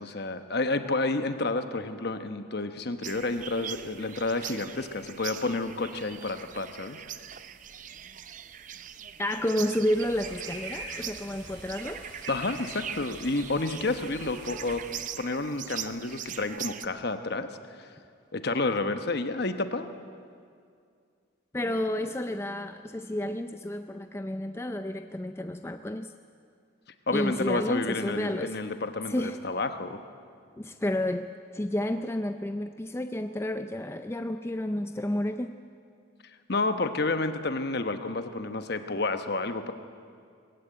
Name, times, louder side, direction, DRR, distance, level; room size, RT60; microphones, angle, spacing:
voice 1, 0.0-7.0 12.3-14.8 15.2-17.5 17.8-17.9 18.3-19.9 27.1-30.0 36.5-39.7, left 3 dB, 55° left, 9 dB, 1.0 m, -30 dB
sound 1, 3.0-16.9, right 9 dB, 40° right, 0.5 m, -41 dB
voice 2, 9.2-12.0 21.5-26.1 27.1-28.6 29.1-29.4 30.6-31.3 31.5-35.6, left 1 dB, 15° left, 8 dB, 0.4 m, -31 dB
sound 2, 9.9-15.0, right 2 dB, 65° right, 5.3 m, -44 dB
20.5 x 15.0 x 9.2 m, 2.3 s
head